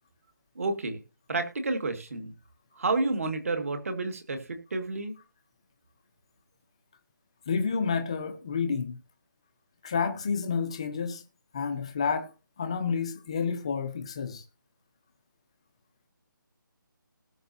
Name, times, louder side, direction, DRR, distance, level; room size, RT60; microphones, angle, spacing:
voice 1, 0.6-1.0 1.3-2.3 2.8-5.1, right 3 dB, 40° right, 2.0 m, -30 dB
voice 2, 7.5-9.0 9.8-11.2 11.5-12.3 12.6-14.4, left 5 dB, 15° left, 0.7 m, -29 dB
19.0 x 6.4 x 2.8 m
hypercardioid pair, 180°, 11 cm